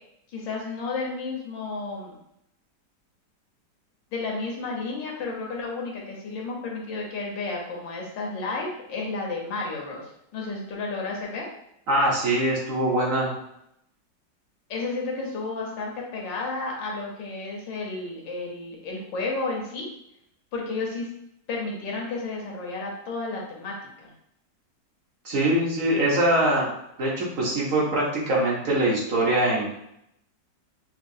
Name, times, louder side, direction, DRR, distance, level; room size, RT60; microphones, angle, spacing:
voice 1, 0.3-2.2 4.1-11.5 14.7-19.9 20.5-21.1 21.5-24.1, left 3 dB, 85° left, -1 dB, 1.7 m, -32 dB
voice 2, 11.9-13.3 25.2-26.7 27.0-29.8, right 1 dB, 50° right, -5 dB, 1.2 m, -23 dB
5.9 x 2.3 x 2.6 m, 0.77 s
omnidirectional pair, 1.9 m